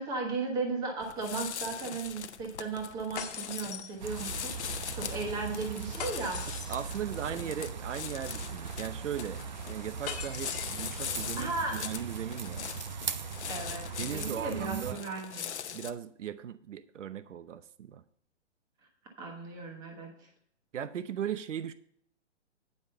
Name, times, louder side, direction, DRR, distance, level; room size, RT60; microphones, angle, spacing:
voice 1, 0.0-6.4 7.3-7.4 11.4-11.8 13.5-15.5 19.2-20.1, right 3 dB, 10° right, 1 dB, 1.2 m, -36 dB
sound 1, 1.0-15.9, left 8 dB, 65° left, 0.8 m, -41 dB
sound 2, 3.2-4.5 6.0-7.0 10.1-11.2, left 8 dB, 35° left, 1.6 m, -41 dB
sound 3, 4.0-14.9, right 6 dB, 40° right, 0.4 m, -39 dB
voice 2, 6.7-12.7 14.0-15.0 15.7-18.0 20.7-21.7, right 9 dB, 80° right, 13 dB, 0.8 m, -38 dB
9.6 x 5.2 x 6.5 m, 0.66 s
hypercardioid pair, 165°, 37 cm